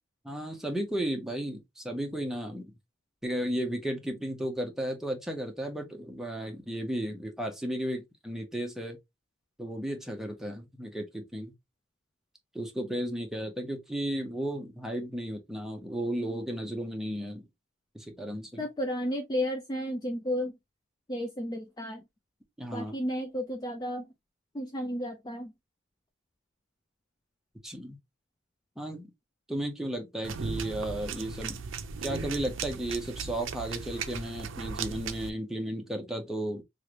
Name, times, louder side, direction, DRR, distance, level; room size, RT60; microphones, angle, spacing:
voice 1, 0.2-2.7 3.2-9.0 9.6-11.5 12.5-17.4 17.9-18.6 22.6-23.0 27.6-28.0 28.8-29.1 29.5-31.6 32.0-36.6, right 1 dB, ahead, 0.8 m, -34 dB
voice 2, 18.6-20.6 21.1-22.0 22.7-24.1 24.5-25.5, equal, 20° left, 0.4 m, -33 dB
sound 1, 30.2-35.3, right 5 dB, 70° right, 0.5 m, -37 dB
3.2 x 2.5 x 2.9 m
head